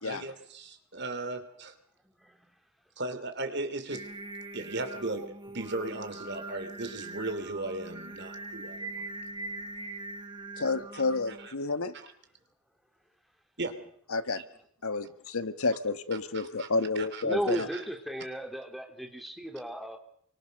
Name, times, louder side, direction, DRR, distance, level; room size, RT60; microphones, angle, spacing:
voice 1, 0.0-1.7 3.0-4.1 4.5-9.1 10.9-11.5 11.9-12.1 13.6-13.9 14.4-14.5 16.3-16.7 16.9-17.2 17.5-17.6, right 2 dB, 50° right, 3.0 m, -37 dB
voice 2, 2.0-2.6 17.2-20.0, equal, ahead, 2.8 m, -35 dB
Singing, 3.9-11.5, right 2 dB, 20° right, 1.4 m, -42 dB
voice 3, 10.6-12.0 14.1-14.4 14.8-17.7, left 3 dB, 80° left, 1.6 m, -30 dB
28.5 x 24.5 x 6.6 m
head